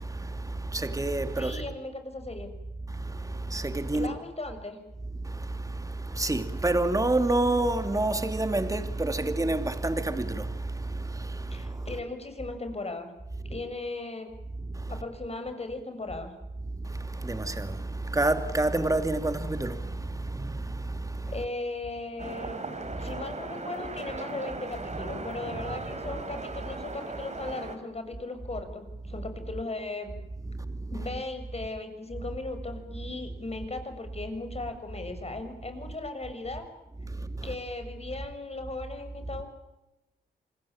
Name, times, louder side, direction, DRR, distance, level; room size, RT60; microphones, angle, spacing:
voice 1, 0.0-1.6 2.8-4.1 5.2-12.0 13.4-13.6 14.6-15.0 16.6-21.4 22.8-23.2 30.4-31.1 37.0-37.6, right 2 dB, 20° right, 2.8 m, -29 dB
voice 2, 1.4-2.5 3.9-4.8 11.5-13.1 13.5-14.3 14.9-16.3 21.3-22.6 23.0-30.2 30.9-36.6 37.4-39.5, left 2 dB, 35° left, 6.7 m, -37 dB
sound 1, 22.2-27.8, right 3 dB, 40° right, 4.7 m, -37 dB
27.5 x 20.0 x 8.9 m
cardioid pair, 60°, 18 cm